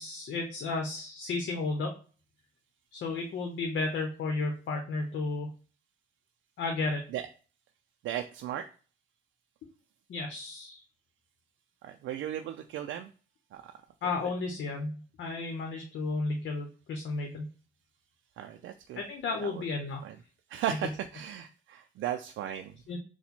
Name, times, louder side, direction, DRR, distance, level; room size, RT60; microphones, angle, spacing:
voice 1, 0.0-2.0 2.9-5.5 6.6-7.0 10.1-10.8 14.0-17.5 19.0-20.0 22.9-23.0, left 3 dB, 65° left, 3 dB, 0.9 m, -33 dB
voice 2, 8.0-8.7 11.8-13.1 13.5-13.7 14.2-14.3 18.4-19.0 19.4-19.6 20.0-20.2 20.5-22.8, right 11 dB, 75° right, 5 dB, 0.4 m, -36 dB
4.3 x 2.2 x 4.2 m, 0.38 s
cardioid pair, 90°, 20 cm